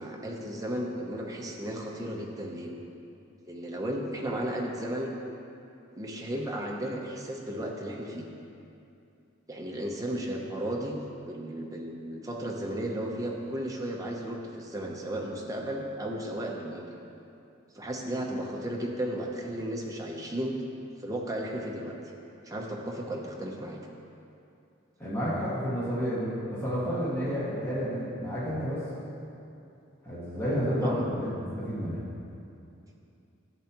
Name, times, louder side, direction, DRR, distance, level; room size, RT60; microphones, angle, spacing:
voice 1, 0.0-2.7 3.4-5.1 6.0-8.3 9.5-11.0 11.3-16.9 17.7-20.6 21.0-22.0 22.5-23.9 30.8-31.0, right 1 dB, 15° right, -1 dB, 0.7 m, -34 dB
voice 2, 25.0-28.8 30.0-31.3 31.6-32.0, equal, 10° left, -10 dB, 1.8 m, -30 dB
10.5 x 7.6 x 3.0 m, 2.7 s
head